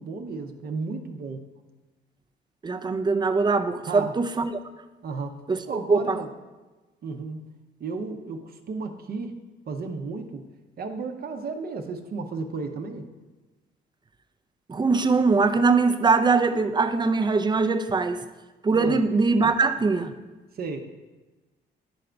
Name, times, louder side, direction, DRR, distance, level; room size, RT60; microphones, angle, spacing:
voice 1, 0.0-1.5 3.9-4.1 5.0-5.4 5.7-6.3 7.0-7.4 7.8-10.4 10.8-13.1 18.7-19.0 20.5-20.8, right 4 dB, 50° right, 5 dB, 0.7 m, -33 dB
voice 2, 2.6-4.6 5.5-6.2 14.7-18.2 18.6-20.1, right 4 dB, 20° right, 9 dB, 0.5 m, -22 dB
11.0 x 3.8 x 3.4 m, 1.2 s
cardioid pair, 90°, 20 cm